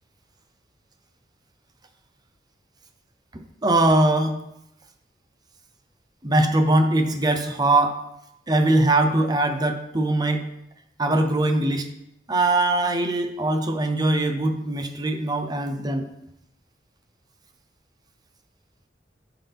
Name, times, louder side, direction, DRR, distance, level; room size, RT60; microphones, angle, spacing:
voice 1, 3.6-4.4 6.2-8.0 8.5-10.5 11.0-11.9 12.3-16.1, right 2 dB, 25° right, 6 dB, 0.8 m, -21 dB
11.5 x 5.9 x 3.6 m, 0.80 s
head